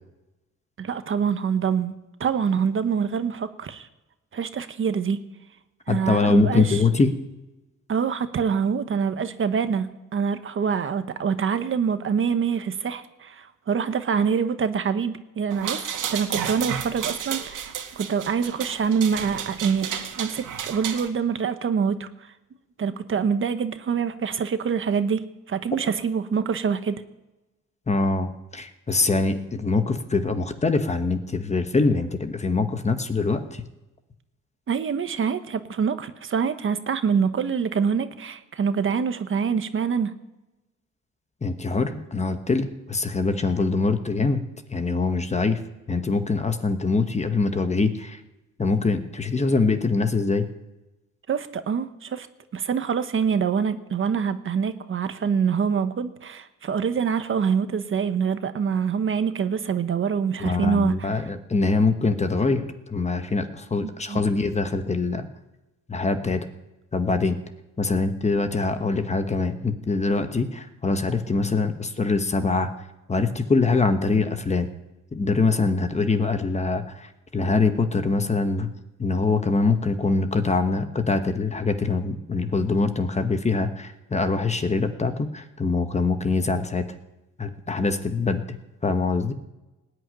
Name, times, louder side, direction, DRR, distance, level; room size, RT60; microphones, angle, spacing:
voice 1, 0.8-1.9 2.2-3.9 4.3-5.2 5.9-6.8 7.9-22.3 22.8-25.2 25.5-27.0 34.7-40.1 51.3-52.3 52.5-61.1 64.1-64.2, right 6 dB, 40° right, 10 dB, 1.0 m, -25 dB
voice 2, 5.9-7.1 27.9-33.6 41.4-44.4 44.7-45.6 45.9-48.2 48.6-50.5 60.4-65.3 65.9-66.5 66.9-67.4 67.8-72.7 73.1-74.7 75.1-78.7 79.0-86.8 87.4-88.6 88.8-89.3, left 3 dB, 20° left, 9 dB, 1.1 m, -24 dB
sound 1, 15.5-21.1, right 8 dB, 75° right, 2.1 m, -32 dB
19.0 x 6.4 x 9.8 m, 1.0 s
cardioid pair, 150°, 32 cm